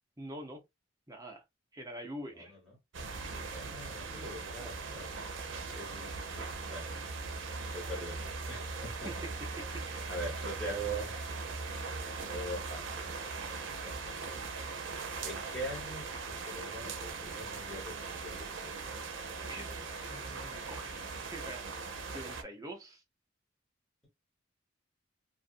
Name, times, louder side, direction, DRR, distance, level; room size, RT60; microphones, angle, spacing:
voice 1, 0.2-0.6 1.1-1.4 1.7-2.6 9.0-10.2 19.5-23.0, right 1 dB, 20° right, 0.6 m, -46 dB
sound 1, 2.9-22.4, right 4 dB, 75° right, 0.6 m, -40 dB
voice 2, 3.5-5.1 5.7-6.9 7.7-8.2 8.5-9.1 10.1-11.1 12.0-12.9 13.8-14.1 15.2-18.4 18.6-18.7, right 1 dB, 5° left, 1.3 m, -42 dB
2.5 x 2.5 x 2.5 m
head